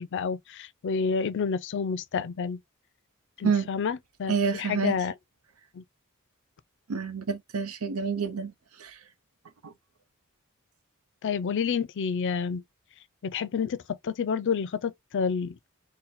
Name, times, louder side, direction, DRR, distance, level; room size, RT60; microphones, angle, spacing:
voice 1, 0.0-2.6 3.4-5.1 5.7-5.8 11.2-12.6 13.2-15.6, left 6 dB, 60° left, 0.4 m, -29 dB
voice 2, 4.3-5.0 6.9-8.5 8.8-8.9 9.6-9.7, right 5 dB, 80° right, 0.7 m, -28 dB
3.9 x 2.1 x 4.2 m
head